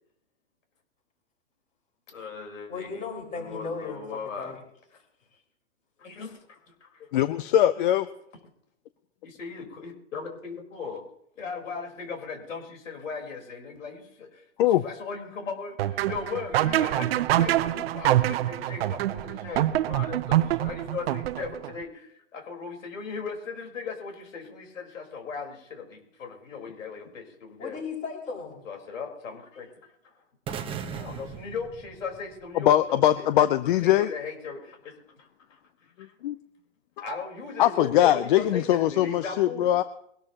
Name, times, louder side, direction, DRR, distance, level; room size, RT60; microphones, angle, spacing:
voice 1, 2.1-3.0 3.4-4.6 6.0-7.1 7.7-7.8 9.2-11.0 11.4-14.4 14.8-27.8 28.7-29.9 30.8-33.5 33.8-36.1 37.0-39.7, left 5 dB, 85° left, 2 dB, 4.4 m, -38 dB
voice 2, 2.7-4.0 4.4-4.6 27.6-28.6, left 4 dB, 20° left, -1 dB, 5.4 m, -35 dB
voice 3, 7.1-8.1 14.6-14.8 32.6-34.1 36.2-36.4 37.6-39.8, left 12 dB, 45° left, 14 dB, 0.6 m, -21 dB
sound 1, 15.8-21.7, right 13 dB, 50° right, 0.7 m, -25 dB
sound 2, 30.5-32.6, right 7 dB, 15° right, 1.0 m, -37 dB
23.0 x 13.0 x 2.9 m, 0.74 s
hypercardioid pair, 145°, 37 cm